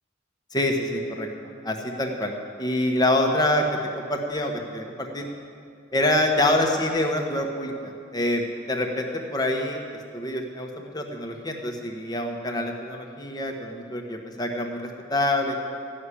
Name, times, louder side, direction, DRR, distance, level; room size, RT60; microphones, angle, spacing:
voice 1, 0.5-2.3 2.6-3.6 4.0-5.3 5.9-9.8 10.1-15.5, left 1 dB, 20° left, 2 dB, 1.2 m, -26 dB
14.5 x 6.4 x 9.9 m, 2.3 s
head